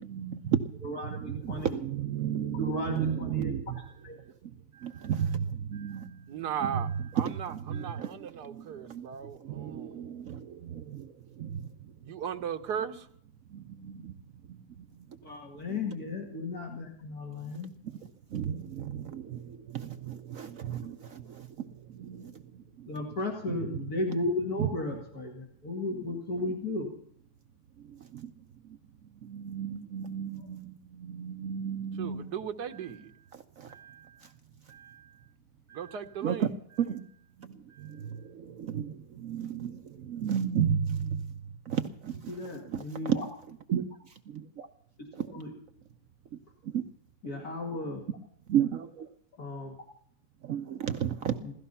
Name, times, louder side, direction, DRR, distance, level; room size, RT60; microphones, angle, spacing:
voice 1, 0.1-0.8 1.2-3.6 4.8-6.2 6.6-6.7 7.3-8.2 8.5-9.1 9.4-11.1 11.4-11.6 13.5-14.1 18.3-21.7 22.0-22.3 23.5-23.6 24.6-24.7 28.1-28.3 29.2-32.3 33.6-34.0 34.7-35.0 35.7-35.8 36.2-36.5 36.8-37.1 37.8-41.2 41.7-42.2 42.7-43.2 43.7-43.9 44.3-44.7 45.2-45.3 46.7-46.9 48.5-49.1 50.4-51.4, right 8 dB, 60° right, 8 dB, 1.1 m, -33 dB
voice 2, 0.8-1.7 2.5-3.5 4.0-4.2 15.2-17.7 22.9-26.9 30.4-30.5 42.3-43.2 45.0-45.1 45.3-45.5 47.2-48.0 49.4-49.8 51.4-51.5, left 2 dB, 60° left, 0 dB, 2.8 m, -34 dB
voice 3, 6.3-6.9 7.1-10.0 12.0-13.1 32.0-33.1 35.7-36.5, right 8 dB, 75° right, 7 dB, 1.7 m, -37 dB
17.0 x 14.0 x 5.6 m, 0.64 s
omnidirectional pair, 1.8 m